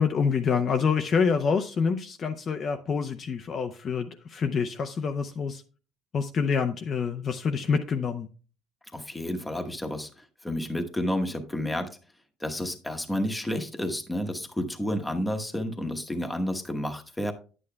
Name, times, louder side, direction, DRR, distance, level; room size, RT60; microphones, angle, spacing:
voice 1, 0.0-5.6 6.1-8.3, left 5 dB, 35° left, 6 dB, 0.5 m, -26 dB
voice 2, 8.9-11.9 12.4-17.3, left 1 dB, 5° left, 4 dB, 1.0 m, -30 dB
11.0 x 8.6 x 2.2 m, 0.37 s
cardioid pair, 140°, 0 cm